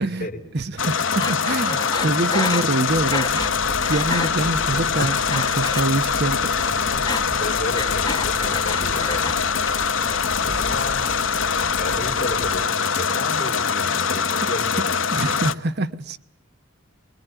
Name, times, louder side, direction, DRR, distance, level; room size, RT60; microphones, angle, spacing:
voice 1, 0.0-0.4 7.4-9.4 10.5-11.0 11.6-14.9, left 1 dB, 40° left, 3.6 m, -32 dB
voice 2, 0.5-3.4 3.9-6.5 14.4-14.5 15.1-16.2, right 2 dB, 50° right, 1.0 m, -25 dB
sound 1, 0.8-15.5, left 6 dB, 70° left, 1.2 m, -23 dB
Breathing, 1.2-3.6 3.8-4.3 4.7-6.3 6.5-9.4 9.7-10.3, left 3 dB, 20° left, 1.5 m, -29 dB
sound 2, 2.9-12.7, right 1 dB, 75° right, 3.5 m, -36 dB
24.5 x 22.5 x 9.1 m
head